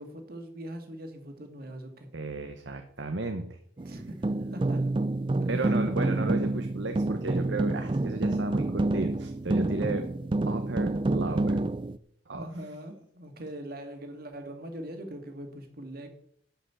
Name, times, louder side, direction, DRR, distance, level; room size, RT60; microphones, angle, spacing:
voice 1, 0.0-2.1 3.9-4.9 5.4-5.7 12.3-16.1, right 1 dB, 50° right, 5 dB, 2.2 m, -42 dB
voice 2, 2.1-3.6 5.5-10.1 10.5-11.6 12.3-12.5, right 2 dB, 70° right, 6 dB, 1.0 m, -34 dB
sound 1, 3.8-12.0, right 2 dB, 25° right, 0.4 m, -28 dB
11.5 x 5.8 x 8.3 m, 0.68 s
head